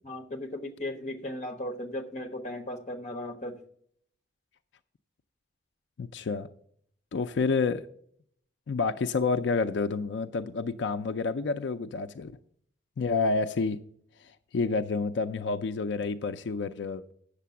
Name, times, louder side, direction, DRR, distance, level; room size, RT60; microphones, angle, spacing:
voice 1, 0.0-3.6, left 1 dB, 40° left, 1.1 m, -36 dB
voice 2, 6.0-6.5 7.1-7.8 8.7-12.3 13.0-13.8 14.2-17.1, left 4 dB, 85° left, 0.4 m, -29 dB
8.3 x 6.7 x 6.9 m
head